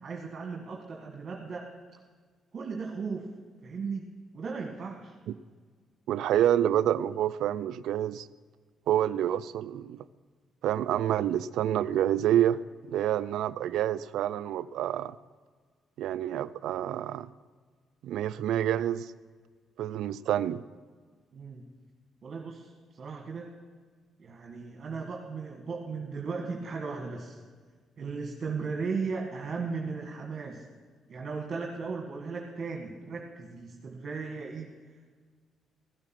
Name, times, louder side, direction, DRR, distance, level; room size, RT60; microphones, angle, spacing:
voice 1, 0.0-1.7 2.5-3.3 3.6-4.0 4.3-5.1 21.3-21.7 22.2-23.5 24.2-27.4 28.0-30.6 31.1-35.1, right 4 dB, 45° right, 1 dB, 1.7 m, -36 dB
voice 2, 6.1-8.3 8.9-10.0 10.6-12.6 12.9-15.2 16.0-17.3 18.0-19.1 19.8-20.6, right 11 dB, 80° right, 16 dB, 0.3 m, -28 dB
15.5 x 8.9 x 6.1 m, 1.5 s
cardioid pair, 90°, 0 cm